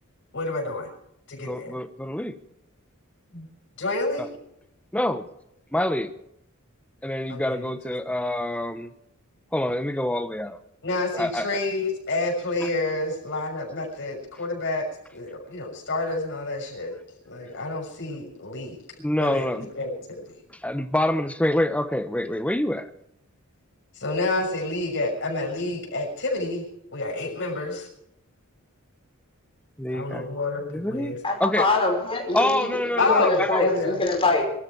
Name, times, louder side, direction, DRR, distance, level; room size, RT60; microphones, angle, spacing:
voice 1, 0.3-0.9 1.3-1.8 3.3-3.5 3.8-4.3 7.3-7.8 10.8-14.8 15.1-16.9 17.2-18.8 19.2-20.2 23.9-26.6 26.9-27.9 29.9-31.2 33.0-34.0, left 2 dB, 60° left, 1 dB, 6.3 m, -28 dB
voice 2, 1.5-2.3 4.2-4.3 4.9-5.3 5.7-6.1 7.0-8.9 9.5-10.6 11.1-11.5 12.6-12.7 19.0-19.7 20.6-22.9 29.8-30.3 30.7-31.1 31.4-31.7 32.3-33.7, left 1 dB, 5° left, 11 dB, 1.0 m, -26 dB
voice 3, 31.2-34.5, left 2 dB, 25° left, 0 dB, 5.2 m, -24 dB
23.5 x 12.5 x 4.7 m, 0.77 s
head